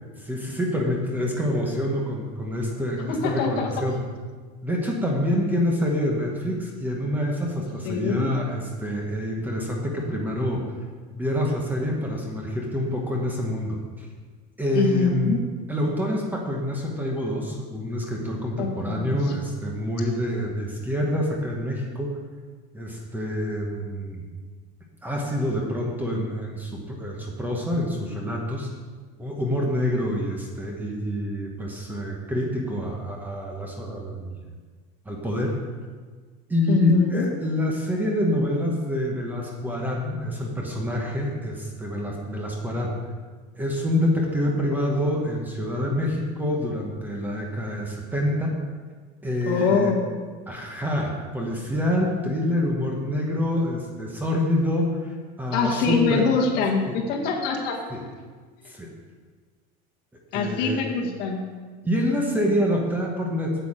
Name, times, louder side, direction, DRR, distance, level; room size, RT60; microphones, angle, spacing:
voice 1, 0.2-4.0 4.6-10.6 11.1-14.1 14.6-15.3 15.7-22.1 22.7-24.2 25.0-28.7 29.2-34.4 35.0-35.5 36.5-43.0 43.6-48.5 49.2-49.9 50.5-56.3 56.9-57.0 57.9-58.0 58.7-58.9 60.3-60.8 61.8-63.6, left 1 dB, 10° right, 0 dB, 1.1 m, -26 dB
voice 2, 3.1-3.7 7.8-8.3 14.7-15.4 18.6-19.2 36.7-37.3 49.5-50.1 55.5-57.8 60.3-61.4, left 5 dB, 50° left, 1 dB, 1.5 m, -24 dB
8.4 x 8.0 x 5.0 m, 1.5 s
cardioid pair, 160°, 21 cm